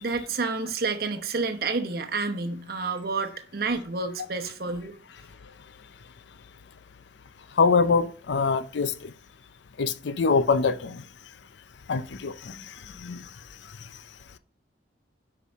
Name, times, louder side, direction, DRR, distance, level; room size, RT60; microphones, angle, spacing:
voice 1, 0.0-4.9, right 4 dB, 55° right, 0.9 m, -29 dB
voice 2, 7.6-9.1 9.8-11.0 11.9-12.6 13.0-13.2, left 4 dB, 80° left, 0.5 m, -24 dB
8.3 x 5.5 x 3.5 m
head